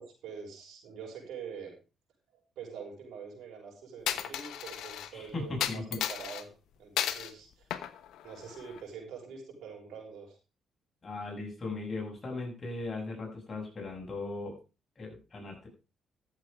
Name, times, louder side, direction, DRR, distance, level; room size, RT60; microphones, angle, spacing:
voice 1, 0.0-1.8 2.6-6.5 6.8-7.7 8.2-10.4, right 6 dB, 80° right, 0 dB, 6.1 m, -45 dB
Coin (dropping), 4.1-5.1 5.6-6.4 7.0-7.3 7.7-8.8, left 10 dB, 80° left, 1.1 m, -34 dB
voice 2, 5.1-6.0 11.0-14.6 15.0-15.7, left 2 dB, 35° left, 0 dB, 6.7 m, -38 dB
13.5 x 7.7 x 5.0 m, 0.32 s
cardioid pair, 90°, 0 cm